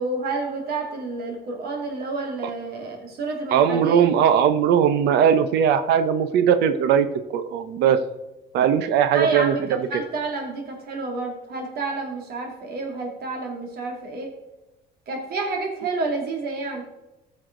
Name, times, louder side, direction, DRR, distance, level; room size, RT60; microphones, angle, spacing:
voice 1, 0.0-4.1 9.1-14.3 15.1-16.8, right 3 dB, 65° right, 2 dB, 2.4 m, -29 dB
voice 2, 3.5-7.1 7.3-8.0 8.5-10.0, right 8 dB, 80° right, 11 dB, 0.7 m, -19 dB
14.0 x 6.4 x 3.8 m, 1.0 s
cardioid pair, 110°, 17 cm